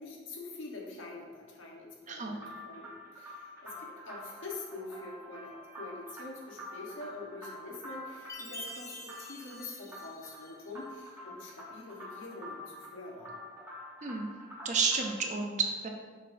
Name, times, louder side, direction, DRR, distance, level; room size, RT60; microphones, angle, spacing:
voice 1, 0.0-13.4, left 2 dB, 80° left, -2 dB, 1.3 m, -45 dB
voice 2, 2.1-2.4 14.0-14.3 14.6-15.9, right 5 dB, 40° right, 2 dB, 0.7 m, -31 dB
sound 1, 2.4-15.3, left 1 dB, 15° right, 1.2 m, -47 dB
Chime, 8.3-10.8, left 1 dB, 15° left, 0.5 m, -46 dB
6.5 x 5.4 x 2.7 m, 1.5 s
head